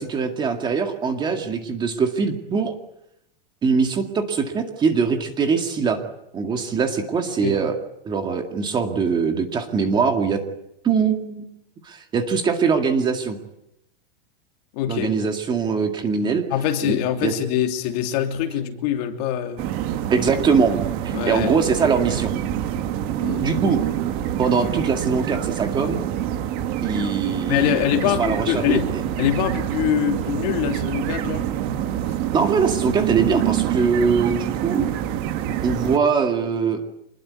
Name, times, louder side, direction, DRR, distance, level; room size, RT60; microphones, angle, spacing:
voice 1, 0.0-2.7 3.6-6.0 6.3-7.7 8.1-10.4 10.8-11.5 11.8-13.4 14.9-16.4 16.8-17.3 20.1-20.7 21.0-22.3 23.4-23.8 24.4-26.0 26.8-27.8 28.2-28.8 32.3-34.9 35.6-36.8, right 5 dB, 15° right, 2.1 m, -22 dB
voice 2, 14.7-15.1 16.5-19.6 21.1-21.6 23.2-23.5 27.5-28.9 29.2-31.4, left 11 dB, 45° left, 3.0 m, -24 dB
sound 1, 19.6-36.0, right 11 dB, 30° right, 1.6 m, -26 dB
26.0 x 21.5 x 9.5 m
supercardioid pair, 170°, 29 cm